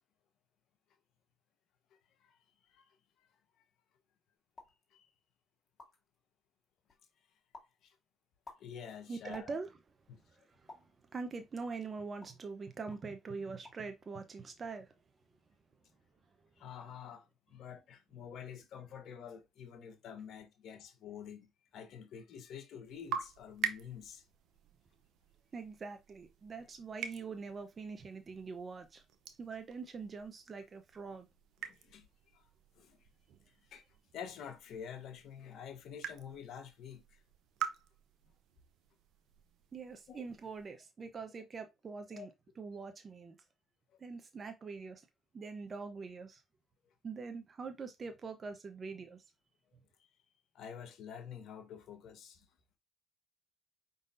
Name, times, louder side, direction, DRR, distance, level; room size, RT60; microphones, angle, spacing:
voice 1, 2.6-3.3 4.9-5.1 7.8-8.0 8.6-9.5 10.1-10.2 16.6-24.2 31.6-32.1 32.3-32.4 32.7-33.0 33.7-33.8 34.1-37.2 40.1-40.2 42.1-42.3 46.8-46.9 50.5-52.5, left 8 dB, 65° left, 1.1 m, -48 dB
sound 1, 4.5-4.8 5.4-5.5 5.6-6.2 6.6-7.1 7.5-7.8 8.2-9.9 10.7-11.0 11.6-12.5 12.9-13.1 13.4-13.9 14.2-14.7, left 3 dB, 40° left, 2.0 m, -55 dB
voice 2, 9.1-9.7 10.3-14.9 25.5-29.0 29.4-31.3 39.7-42.3 42.6-43.4 44.0-45.1 45.3-46.4 47.0-49.2, right 4 dB, 40° right, 0.8 m, -44 dB
sound 2, 22.8-40.7, right 8 dB, 70° right, 0.7 m, -46 dB
5.2 x 3.9 x 2.6 m
supercardioid pair, 70°, 0 cm